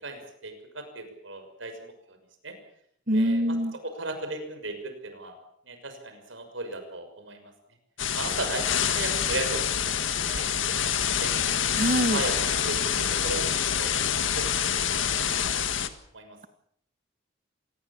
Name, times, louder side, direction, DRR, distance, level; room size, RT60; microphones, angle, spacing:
voice 1, 0.0-2.2 2.4-2.6 3.1-3.6 3.8-5.3 5.6-7.5 8.1-11.4 11.9-13.5 13.8-15.6 16.1-16.5, right 2 dB, 80° right, 7 dB, 6.2 m, -37 dB
voice 2, 3.1-3.7 11.7-12.2, equal, 45° right, 12 dB, 1.6 m, -24 dB
sound 1, 8.0-15.9, left 8 dB, 85° left, 1.8 m, -26 dB
26.0 x 20.0 x 7.4 m, 0.68 s
head